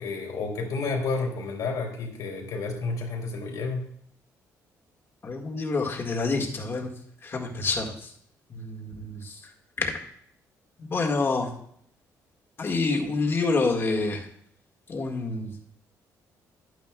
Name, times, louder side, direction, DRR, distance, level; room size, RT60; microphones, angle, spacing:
voice 1, 0.0-3.8, left 3 dB, 80° left, 0 dB, 2.8 m, -30 dB
voice 2, 5.2-6.9 7.2-8.1 8.5-9.3 9.8-9.9 10.8-11.5 12.6-14.2 14.9-15.6, left 3 dB, 40° left, 1 dB, 1.8 m, -27 dB
11.0 x 9.4 x 2.3 m, 0.66 s
cardioid pair, 100°, 6 cm